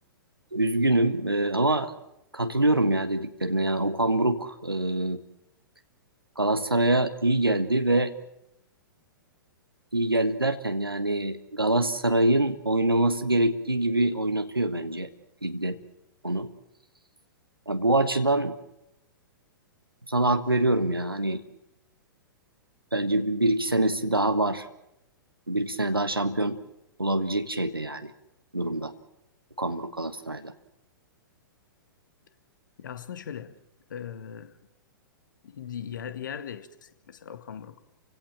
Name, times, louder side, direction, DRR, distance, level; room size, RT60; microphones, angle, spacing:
voice 1, 0.5-1.9 2.3-5.2 6.4-8.1 9.9-15.1 15.4-15.8 16.2-16.5 17.7-18.6 20.1-21.4 22.9-24.7 25.5-26.6 27.0-28.1 28.5-28.9 29.6-30.5, right 1 dB, 85° right, 1.4 m, -25 dB
voice 2, 32.8-33.6 33.9-34.5 35.4-37.8, left 8 dB, 60° left, 1.7 m, -39 dB
30.0 x 16.5 x 7.5 m
figure-of-eight pair, 110°, 12 cm